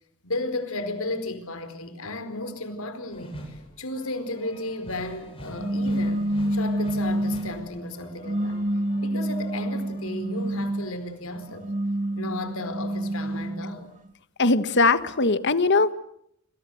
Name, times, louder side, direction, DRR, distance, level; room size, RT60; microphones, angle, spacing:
voice 1, 0.2-8.6 9.0-11.7 12.2-13.9, left 2 dB, 90° left, 4.6 m, -34 dB
sound 1, 3.1-11.9 12.2-13.5, equal, 25° left, 7.6 m, -46 dB
sound 2, 5.6-7.6 8.2-10.9 11.5-13.8, right 1 dB, 40° right, 1.7 m, -28 dB
voice 2, 14.4-15.9, left 3 dB, 55° left, 1.6 m, -20 dB
27.5 x 27.0 x 7.9 m
head